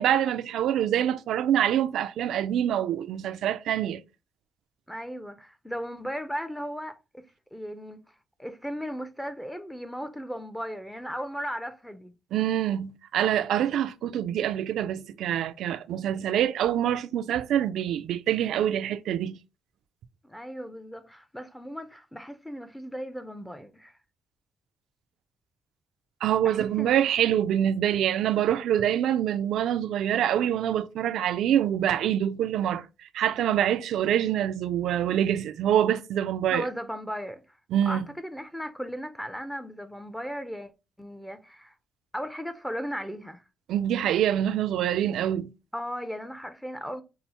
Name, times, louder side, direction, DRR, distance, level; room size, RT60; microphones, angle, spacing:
voice 1, 0.0-4.0 12.3-19.4 26.2-36.7 37.7-38.0 43.7-45.5, right 10 dB, 80° right, 0.3 m, -25 dB
voice 2, 4.9-7.2 7.5-8.0 8.4-12.1 20.2-24.0 26.4-27.0 36.5-37.4 37.9-40.7 41.0-41.7 42.1-43.4 45.7-47.0, equal, 5° left, 0.4 m, -36 dB
5.4 x 2.0 x 2.8 m
cardioid pair, 90°, 0 cm